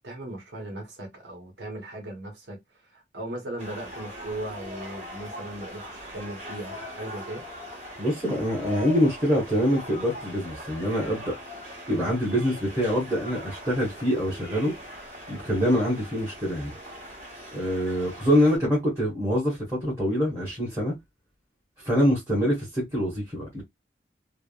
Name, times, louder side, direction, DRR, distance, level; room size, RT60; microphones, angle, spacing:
voice 1, 0.0-2.6 2.9-7.4, right 1 dB, 75° right, 1.0 m, -38 dB
sound 1, 3.6-18.6, equal, 35° right, 1.5 m, -41 dB
voice 2, 8.0-11.3 11.9-14.7 15.3-16.7 17.5-20.9 21.8-23.6, equal, 15° right, 1.1 m, -25 dB
3.3 x 2.1 x 2.3 m
head